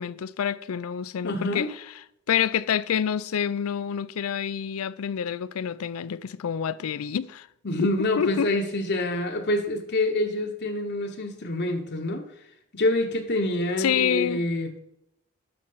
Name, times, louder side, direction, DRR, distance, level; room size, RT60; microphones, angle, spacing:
voice 1, 0.0-1.7 2.3-7.5 7.8-7.9 8.2-8.5 13.8-14.4, left 8 dB, 80° left, 0.4 m, -27 dB
voice 2, 1.2-1.7 7.6-12.3 12.7-14.8, left 1 dB, 55° left, 0.9 m, -26 dB
12.0 x 4.4 x 5.5 m
head